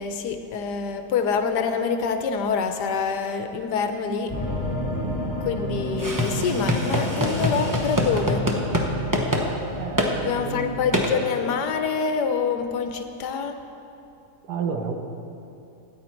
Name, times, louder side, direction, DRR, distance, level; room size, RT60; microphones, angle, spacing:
voice 1, 0.0-4.3 5.4-8.5 10.2-13.5, left 5 dB, 80° left, 7 dB, 1.4 m, -26 dB
sound 1, 4.3-11.0, equal, 20° left, 3.1 m, -31 dB
voice 2, 4.9-5.3 9.8-10.8 14.5-14.9, right 5 dB, 80° right, 3 dB, 1.6 m, -31 dB
sound 2, 6.0-8.9 9.1-9.5 10.0-10.1 10.9-11.1, equal, 15° right, 0.8 m, -24 dB
13.5 x 9.3 x 4.5 m, 2.8 s
omnidirectional pair, 1.7 m